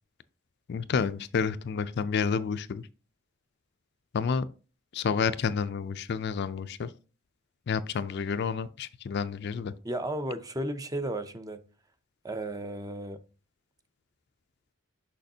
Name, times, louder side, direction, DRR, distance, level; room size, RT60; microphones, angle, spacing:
voice 1, 0.7-2.9 4.1-4.4 4.9-6.9 7.7-9.7, left 6 dB, 50° left, 0.4 m, -29 dB
voice 2, 9.8-11.6 12.2-13.2, right 1 dB, 15° right, 0.5 m, -34 dB
6.4 x 6.0 x 2.7 m
head